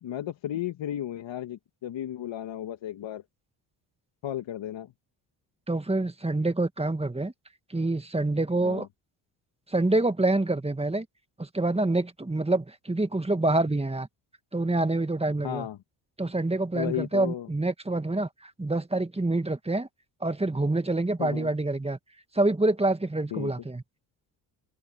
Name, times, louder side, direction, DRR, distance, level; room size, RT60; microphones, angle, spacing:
voice 1, 0.0-3.2 4.2-4.9 8.6-8.9 15.4-15.8 16.7-17.5 21.2-21.5 23.3-23.5, left 11 dB, 65° left, 2.1 m, -34 dB
voice 2, 5.7-7.3 7.7-8.9 9.7-11.1 11.4-14.1 14.5-15.7 16.2-19.9 20.2-22.0 22.3-23.8, right 2 dB, 10° right, 1.9 m, -26 dB
open air
supercardioid pair, 55°, 49 cm